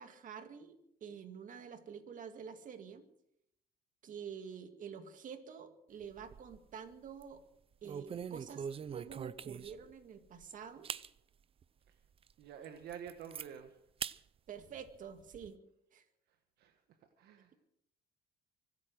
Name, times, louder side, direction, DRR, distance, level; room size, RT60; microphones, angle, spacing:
voice 1, 0.0-3.1 4.0-7.4 7.8-10.9 14.5-15.6 15.9-16.0, right 7 dB, 50° right, 7 dB, 2.1 m, -48 dB
sound 1, 6.0-6.7 7.1-7.3 7.8-9.9 10.4-10.5 10.8-11.1 11.6-11.7 12.2-12.3 12.6-13.5 14.0-14.2 14.6-15.5, right 7 dB, 35° right, 0.6 m, -43 dB
voice 2, 12.4-13.7 16.6-16.7 17.2-17.6, right 8 dB, 70° right, 7 dB, 1.4 m, -48 dB
24.5 x 8.7 x 6.3 m, 0.74 s
cardioid pair, 110°, 17 cm